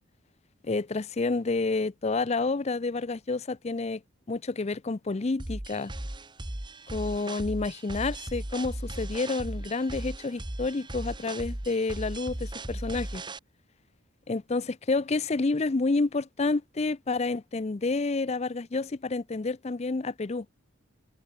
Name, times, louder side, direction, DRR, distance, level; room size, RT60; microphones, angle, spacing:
voice 1, 0.6-4.0 4.3-5.9 6.9-13.2 14.3-20.5, left 3 dB, 30° left, 0.5 m, -29 dB
sound 1, 5.4-13.4, right 1 dB, 20° right, 1.5 m, -37 dB
head